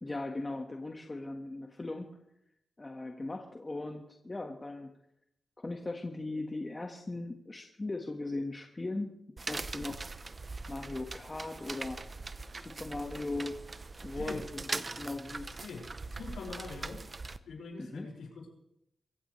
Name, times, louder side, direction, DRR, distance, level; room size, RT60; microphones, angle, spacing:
voice 1, 0.0-2.2 2.8-4.9 5.6-9.2 9.5-10.0 10.7-12.0 12.5-13.6 14.0-15.6 17.8-18.1, left 2 dB, 25° left, 3 dB, 1.6 m, -39 dB
sound 1, 9.4-17.4, right 3 dB, 35° right, 0.9 m, -41 dB
voice 2, 16.1-17.0 17.5-18.5, left 4 dB, 90° left, -1 dB, 5.6 m, -43 dB
23.5 x 15.5 x 3.3 m, 0.79 s
cardioid pair, 75°, 0 cm